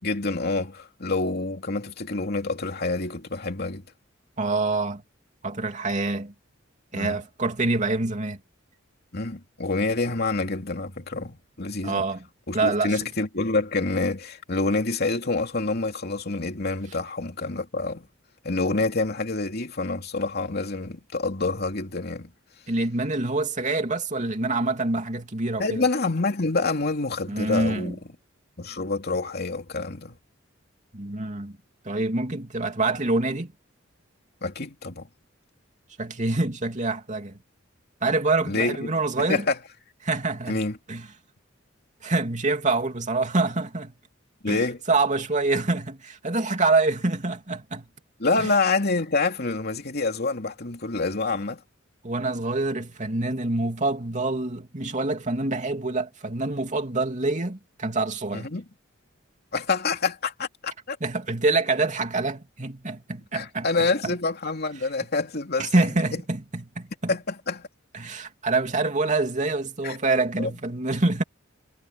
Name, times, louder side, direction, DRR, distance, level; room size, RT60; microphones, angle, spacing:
voice 1, 0.0-3.8 6.9-7.2 9.1-12.0 12.5-18.1 18.4-22.3 25.6-28.0 28.6-30.2 34.4-35.1 38.5-39.6 40.5-40.8 44.4-44.8 48.2-51.6 58.3-58.7 59.5-61.0 63.3-65.9 67.1-67.7 69.8-70.0 70.4-70.5, left 3 dB, 55° left, 2.9 m, -27 dB
voice 2, 4.4-5.0 5.4-6.3 6.9-8.4 11.8-12.2 12.5-13.0 22.7-25.8 27.3-27.9 30.9-31.6 31.8-33.5 36.0-37.4 38.0-39.4 40.0-40.6 40.9-41.1 42.0-43.9 44.5-47.9 48.4-48.5 52.0-58.5 61.0-63.7 64.0-64.1 65.6-67.1 67.9-71.2, right 3 dB, 40° right, 2.8 m, -26 dB
head